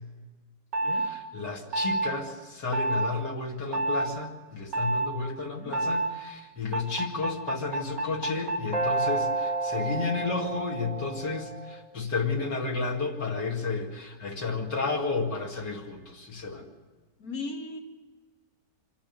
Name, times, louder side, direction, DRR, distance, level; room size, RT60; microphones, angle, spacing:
sound 1, 0.7-1.1 1.7-2.1 2.7-3.1 3.7-4.1 4.7-5.1 5.7-6.1 6.7-11.8, right 2 dB, 25° right, 5.0 m, -29 dB
voice 1, 0.9-16.7, left 4 dB, 80° left, 0 dB, 2.9 m, -32 dB
voice 2, 17.2-17.8, left 3 dB, 60° left, 3 dB, 2.3 m, -37 dB
25.5 x 11.5 x 9.0 m, 1.4 s
omnidirectional pair, 1.8 m